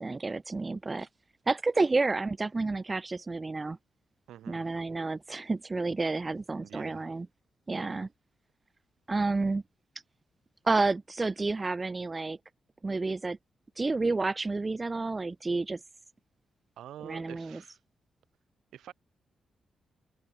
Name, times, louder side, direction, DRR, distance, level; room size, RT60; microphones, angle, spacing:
voice 1, 0.0-1.1 1.5-3.8 4.5-7.3 7.7-8.1 9.1-9.6 10.6-12.4 12.8-13.4 13.8-15.8 17.0-17.6, right 3 dB, 25° right, 0.7 m, -30 dB
voice 2, 4.3-4.7 6.6-7.0 7.7-8.1 16.8-17.8 18.7-18.9, right 11 dB, 85° right, 8.0 m, -47 dB
open air
cardioid pair, 75°, 0 cm